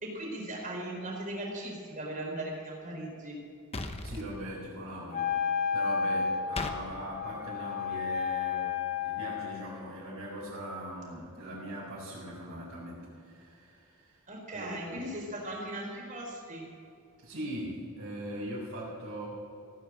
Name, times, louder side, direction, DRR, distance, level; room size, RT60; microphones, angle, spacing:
voice 1, 0.0-3.4 14.3-16.6, right 1 dB, 35° right, -1 dB, 4.4 m, -38 dB
sound 1, 3.7-4.3 6.6-6.8, left 2 dB, 25° left, 1.0 m, -35 dB
voice 2, 4.0-5.4 5.7-8.7 9.0-14.2 14.5-15.0 17.2-19.3, right 1 dB, 60° right, -8 dB, 4.9 m, -40 dB
Wind instrument woodwind instrument, 5.1-9.7, left 6 dB, 45° left, 1.2 m, -32 dB
17.0 x 9.4 x 7.8 m, 2.6 s
head